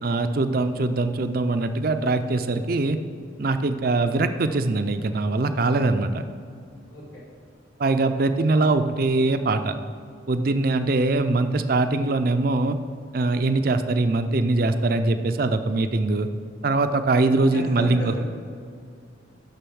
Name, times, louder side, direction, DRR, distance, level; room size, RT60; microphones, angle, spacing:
voice 1, 0.0-3.0 3.4-6.2 7.8-9.8 10.3-12.8 13.1-16.3 16.6-18.2, right 2 dB, 50° right, 9 dB, 0.4 m, -22 dB
voice 2, 6.9-7.2 17.5-18.2, left 1 dB, 65° left, -6 dB, 1.8 m, -36 dB
6.7 x 6.2 x 6.2 m, 2.3 s
head